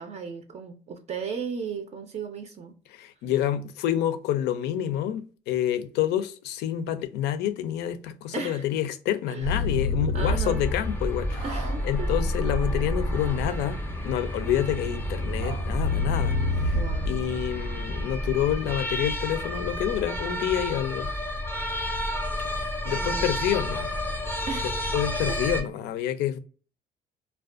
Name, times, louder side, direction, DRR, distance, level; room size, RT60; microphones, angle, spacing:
voice 1, 0.0-2.7 8.3-8.7 9.3-9.5 10.1-10.6 11.4-12.2 16.7-17.2 22.9-23.3 24.5-24.7 25.3-25.4, right 5 dB, 40° right, 0.4 m, -35 dB
voice 2, 2.9-11.4 11.8-16.4 16.6-16.8 17.1-21.1 22.4-23.9 24.9-26.4, left 11 dB, 80° left, 0.4 m, -28 dB
sound 1, 9.4-17.2, left 2 dB, 85° right, 0.8 m, -29 dB
sound 2, 10.2-25.6, left 1 dB, 10° left, 0.5 m, -31 dB
2.4 x 2.2 x 2.4 m
cardioid pair, 110°, 17 cm